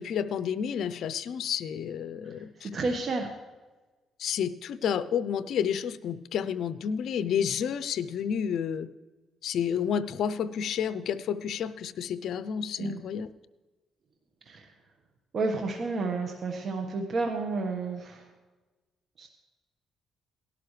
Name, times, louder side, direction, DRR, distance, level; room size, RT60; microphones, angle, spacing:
voice 1, 0.0-2.7 4.2-8.9 9.4-13.3, left 8 dB, 70° left, 14 dB, 0.6 m, -30 dB
voice 2, 2.6-3.3 12.8-13.0 14.5-14.7 15.3-18.2 19.2-19.3, right 3 dB, 50° right, 3 dB, 1.4 m, -31 dB
18.0 x 12.0 x 3.3 m, 1.2 s
cardioid pair, 90°, 0 cm